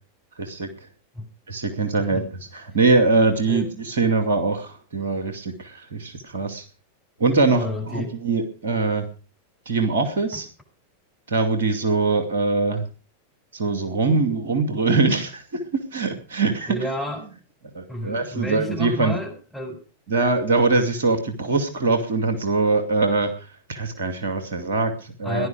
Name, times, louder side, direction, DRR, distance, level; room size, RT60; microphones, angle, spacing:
voice 1, 0.4-0.7 1.5-2.2 2.7-6.6 7.2-9.0 9.7-10.5 11.3-12.8 13.5-15.4 15.7-16.8 17.7-19.2 20.1-23.3 23.7-25.5, right 3 dB, 65° right, 7 dB, 2.4 m, -22 dB
voice 2, 7.5-8.1 10.3-10.4 16.7-17.3 17.9-19.8 25.2-25.5, left 1 dB, 5° left, -1 dB, 7.0 m, -30 dB
17.5 x 11.5 x 5.0 m, 0.36 s
figure-of-eight pair, 90°, 0 cm